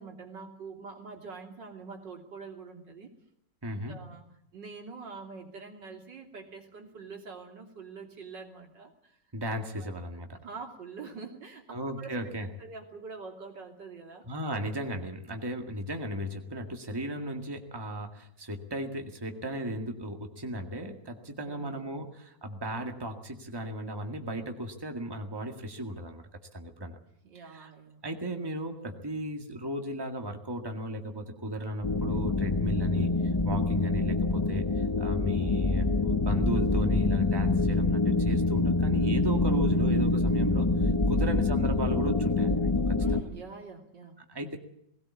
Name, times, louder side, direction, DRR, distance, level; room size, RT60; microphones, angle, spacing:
voice 1, 0.0-3.1 3.9-4.2 4.5-9.2 9.7-9.9 10.3-14.3 21.4-22.1 27.2-28.0 41.1-41.4 43.0-44.2, right 4 dB, 85° right, 2 dB, 3.7 m, -45 dB
voice 2, 3.6-3.9 9.3-10.4 11.7-12.5 14.3-26.2 26.5-27.0 27.5-27.7 28.0-33.1 33.4-34.6 35.0-42.7 44.3-44.6, equal, 15° right, 4 dB, 1.9 m, -35 dB
sound 1, 31.8-43.2, left 3 dB, 30° left, 0.5 m, -26 dB
19.5 x 17.5 x 8.5 m, 0.71 s
omnidirectional pair, 1.9 m